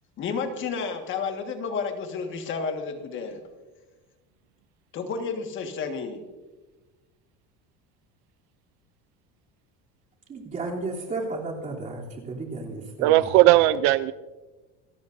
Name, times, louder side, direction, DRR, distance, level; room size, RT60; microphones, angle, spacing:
voice 1, 0.2-3.4 4.9-6.2, left 5 dB, 40° left, 5 dB, 1.6 m, -31 dB
voice 2, 10.3-13.3, right 3 dB, 25° right, -2 dB, 3.1 m, -33 dB
voice 3, 13.0-14.1, right 16 dB, 65° right, 15 dB, 0.5 m, -18 dB
27.5 x 13.5 x 2.6 m, 1.2 s
cardioid pair, 160°, 30 cm